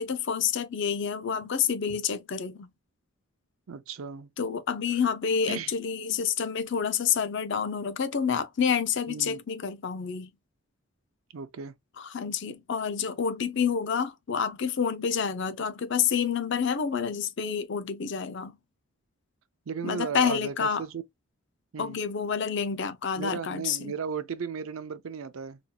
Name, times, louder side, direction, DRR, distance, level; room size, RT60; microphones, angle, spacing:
voice 1, 0.0-2.7 4.4-10.3 12.0-18.5 19.8-20.8 21.8-23.9, left 7 dB, 55° left, 0.5 m, -28 dB
voice 2, 3.7-4.3 5.4-5.7 9.1-9.4 11.3-11.7 19.7-21.0 21.7-22.0 23.1-25.6, right 6 dB, 65° right, 0.5 m, -35 dB
4.0 x 2.7 x 2.2 m
head